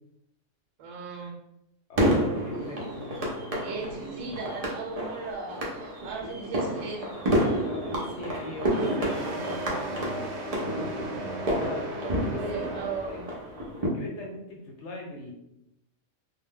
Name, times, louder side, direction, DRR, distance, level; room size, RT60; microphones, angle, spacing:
voice 1, 0.8-1.4 3.5-7.1 12.0-13.3, right 4 dB, 85° right, 1 dB, 1.0 m, -37 dB
voice 2, 1.9-4.4 7.6-13.2 13.8-15.3, left 2 dB, 70° left, 0 dB, 0.9 m, -40 dB
sound 1, 2.0-13.9, equal, 45° right, 0.5 m, -30 dB
sound 2, 8.6-13.7, right 2 dB, 70° right, 0.8 m, -37 dB
2.2 x 2.1 x 3.5 m, 0.82 s
omnidirectional pair, 1.3 m